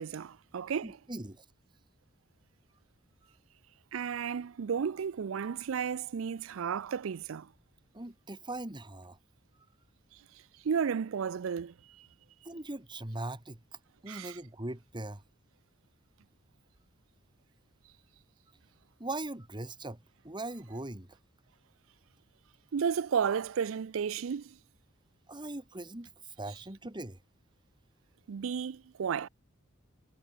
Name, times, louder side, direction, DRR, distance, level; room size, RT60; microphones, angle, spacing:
voice 1, 0.0-1.0 3.9-7.5 10.6-11.7 14.1-14.4 22.7-24.4 28.3-29.3, right 7 dB, 75° right, 0.4 m, -33 dB
voice 2, 0.8-1.4 7.9-9.2 12.5-13.6 14.0-15.2 19.0-20.0 20.2-21.1 25.3-26.1 26.4-27.2, right 2 dB, 25° right, 2.1 m, -40 dB
head